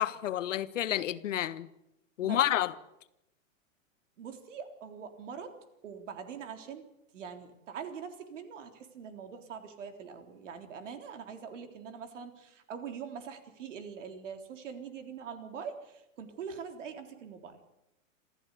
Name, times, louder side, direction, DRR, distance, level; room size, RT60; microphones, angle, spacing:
voice 1, 0.0-1.7 2.2-2.7, left 12 dB, 65° left, 1.4 m, -29 dB
voice 2, 4.2-5.6 5.8-6.8 7.1-17.6, right 6 dB, 65° right, 3.7 m, -43 dB
27.0 x 14.5 x 8.3 m
supercardioid pair, 180°, 40 cm